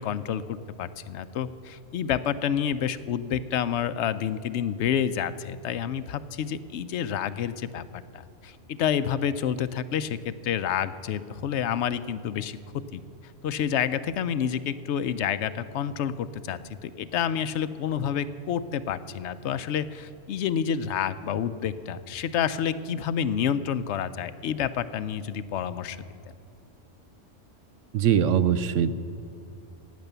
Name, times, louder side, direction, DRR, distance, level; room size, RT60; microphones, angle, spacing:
voice 1, 0.0-12.6 12.9-13.0 13.4-26.0, left 8 dB, 70° left, 14 dB, 0.9 m, -29 dB
voice 2, 27.9-28.9, right 8 dB, 85° right, 14 dB, 1.0 m, -22 dB
16.5 x 9.5 x 6.8 m, 2.5 s
omnidirectional pair, 1.3 m